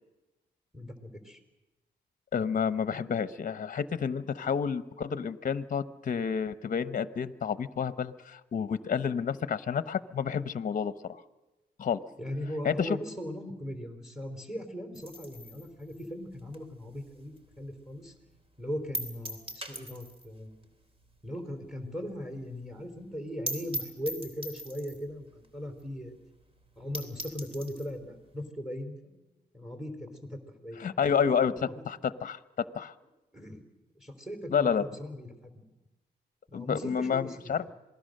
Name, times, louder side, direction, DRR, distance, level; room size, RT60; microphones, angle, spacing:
voice 1, 0.7-1.4 12.2-18.1 18.6-20.7 21.2-26.1 26.8-29.3 29.5-31.0 31.2-31.8 33.3-33.6 34.0-35.3 35.6-35.7 36.5-37.7, equal, ahead, 5 dB, 3.9 m, -39 dB
voice 2, 2.3-11.2 11.8-12.0 12.6-13.0 30.8-32.4 32.7-32.9 34.5-34.8 36.5-37.6, left 7 dB, 50° left, 14 dB, 0.9 m, -30 dB
sound 1, 14.9-17.6 17.9-18.0 18.3-18.4 18.9-20.3 20.6-20.7 21.0-21.1 21.5-21.6 21.9-22.0 22.2-22.3 22.6-22.7 23.1-23.2 23.5-25.1 25.8-25.9 26.2-26.3 26.7-26.8 26.9-27.9, right 1 dB, 30° right, 3.1 m, -40 dB
27.0 x 19.5 x 6.6 m, 1.1 s
cardioid pair, 110°, 18 cm